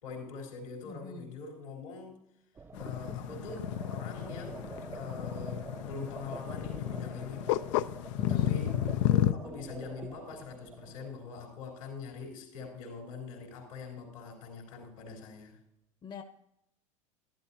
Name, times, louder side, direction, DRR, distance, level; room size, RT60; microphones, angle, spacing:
voice 1, 0.0-2.2 2.8-7.7 8.3-8.8 9.1-15.6, left 4 dB, 85° left, 1 dB, 3.8 m, -44 dB
voice 2, 0.8-1.4 8.2-8.7 16.0-16.2, left 5 dB, 25° left, 8 dB, 0.9 m, -44 dB
sound 1, 2.6-11.1, right 5 dB, 15° right, 0.3 m, -46 dB
sound 2, 2.7-9.3, left 13 dB, 65° left, 0.5 m, -32 dB
12.5 x 12.5 x 2.8 m, 0.80 s
hypercardioid pair, 90°, 17 cm